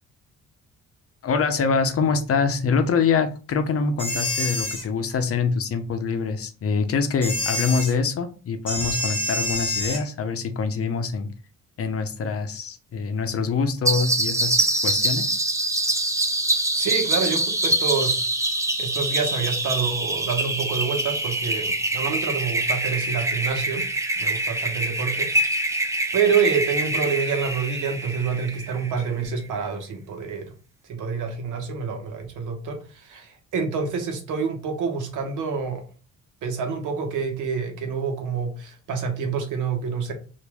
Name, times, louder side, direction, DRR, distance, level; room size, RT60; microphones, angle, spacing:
voice 1, 1.2-11.3 11.8-15.4, left 5 dB, 50° left, 0.7 m, -25 dB
sound 1, 4.0-4.8 7.2-7.9 8.7-10.0, left 1 dB, 15° left, 1.3 m, -27 dB
sound 2, 13.9-29.1, right 1 dB, 10° right, 0.5 m, -25 dB
voice 2, 16.7-18.3 18.8-23.9 24.2-25.3 26.1-30.5 30.9-35.8 36.4-40.1, right 6 dB, 85° right, 1.0 m, -27 dB
2.9 x 2.6 x 3.4 m
cardioid pair, 90°, 30 cm